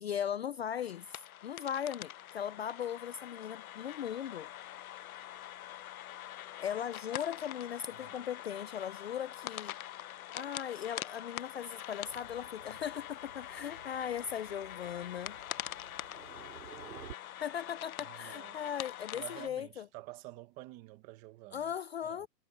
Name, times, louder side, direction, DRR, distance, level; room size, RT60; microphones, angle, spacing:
voice 1, 0.0-4.5 6.6-9.8 10.3-15.4 17.4-19.8 21.5-22.3, left 9 dB, 40° left, 0.5 m, -38 dB
sound 1, 0.8-19.5, left 12 dB, 60° left, 0.9 m, -45 dB
Thunder, 12.0-17.1, right 10 dB, 80° right, 2.7 m, -54 dB
voice 2, 18.0-18.6 19.1-21.7 22.0-22.3, right 17 dB, 15° right, 1.0 m, -49 dB
hypercardioid pair, 165°, 49 cm